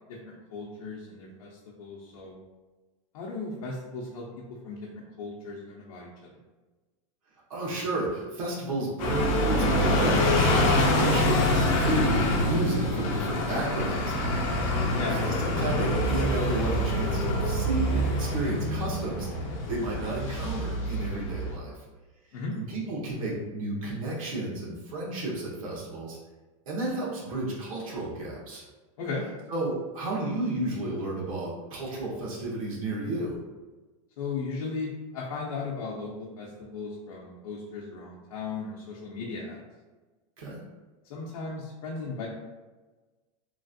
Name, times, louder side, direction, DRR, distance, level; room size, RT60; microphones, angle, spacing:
voice 1, 0.1-2.4 3.1-6.3 15.0-15.2 22.3-22.6 29.0-29.2 34.2-39.6 41.1-42.3, left 4 dB, 80° left, -4 dB, 0.6 m, -36 dB
voice 2, 7.5-14.7 15.1-21.8 22.5-26.2 26.7-28.6 29.5-33.4 40.4-40.6, right 2 dB, 75° right, -4 dB, 1.2 m, -32 dB
sound 1, 9.0-21.6, left 1 dB, 30° left, 0.4 m, -26 dB
3.1 x 2.5 x 2.6 m, 1.2 s
supercardioid pair, 165°, 17 cm